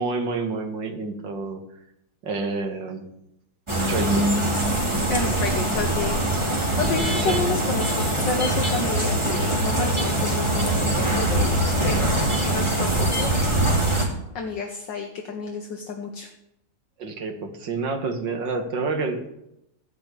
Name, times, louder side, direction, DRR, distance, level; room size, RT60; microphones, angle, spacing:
voice 1, 0.0-1.6 2.2-3.1 3.9-4.3 7.2-7.4 17.0-19.3, right 3 dB, 60° right, 5 dB, 2.1 m, -28 dB
sound 1, 3.7-14.1, right 1 dB, 15° right, 2.2 m, -23 dB
voice 2, 5.1-6.3 6.8-13.5 14.3-16.3, left 4 dB, 60° left, 2 dB, 1.7 m, -30 dB
15.0 x 5.8 x 8.3 m, 0.84 s
omnidirectional pair, 2.4 m